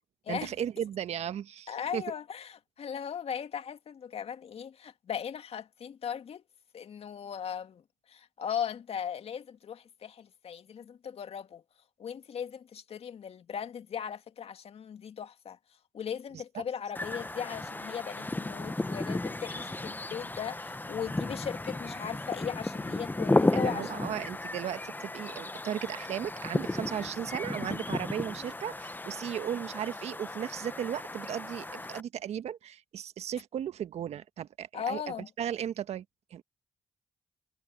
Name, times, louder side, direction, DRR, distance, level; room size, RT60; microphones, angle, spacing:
voice 1, 0.3-2.0 16.3-16.6 23.5-36.0 36.3-36.4, right 9 dB, 70° right, 1.5 m, -36 dB
voice 2, 1.7-6.4 6.7-7.8 8.1-11.6 12.0-15.6 15.9-24.0 34.7-35.3, left 8 dB, 60° left, 2.2 m, -38 dB
sound 1, 16.9-32.0, left 2 dB, 15° left, 1.2 m, -34 dB
hypercardioid pair, 45°, 11 cm